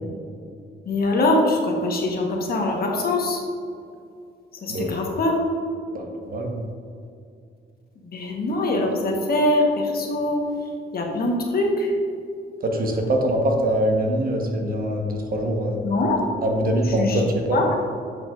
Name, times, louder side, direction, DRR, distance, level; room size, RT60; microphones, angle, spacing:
voice 1, 0.8-3.4 4.6-5.4 8.0-10.4 10.9-11.9 15.8-16.2 16.8-17.2 17.5-17.7, left 2 dB, 50° left, 0 dB, 1.2 m, -23 dB
voice 2, 5.9-6.6 12.6-15.8 16.4-17.6, right 1 dB, 45° right, 1 dB, 1.2 m, -23 dB
10.0 x 4.8 x 2.5 m, 2.4 s
cardioid pair, 90°, 20 cm